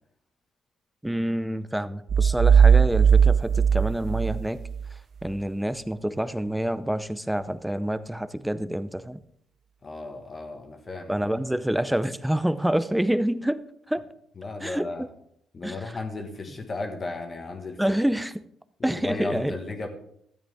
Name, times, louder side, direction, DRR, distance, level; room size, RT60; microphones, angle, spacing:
voice 1, 1.0-4.6 5.2-9.2 11.1-13.6 13.9-14.0 14.6-14.9 15.6-15.8 17.8-18.3 18.8-19.6, right 1 dB, 5° right, 0.6 m, -27 dB
sound 1, 2.1-4.9, right 7 dB, 55° right, 0.4 m, -18 dB
voice 2, 9.8-11.2 14.4-15.0 15.5-17.8 18.8-19.9, left 3 dB, 35° left, 1.5 m, -35 dB
13.0 x 8.7 x 3.5 m
cardioid pair, 90°, 0 cm